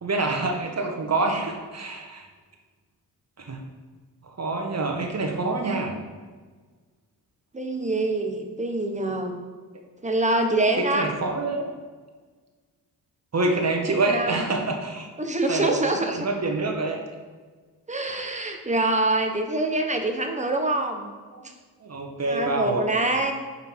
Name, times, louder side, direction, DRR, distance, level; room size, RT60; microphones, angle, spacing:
voice 1, 0.0-2.3 3.4-3.6 4.2-5.9 10.8-11.7 13.3-15.1 15.5-15.8 16.1-17.0 18.0-18.2 21.3-21.4 21.8-22.8, right 3 dB, 35° right, 2 dB, 1.6 m, -26 dB
voice 2, 7.5-9.3 10.0-11.1 14.1-14.5 15.2-16.2 17.9-21.1 22.3-23.3, right 2 dB, 15° right, 4 dB, 1.3 m, -25 dB
5.6 x 5.5 x 4.7 m, 1.5 s
hypercardioid pair, 40°, 46 cm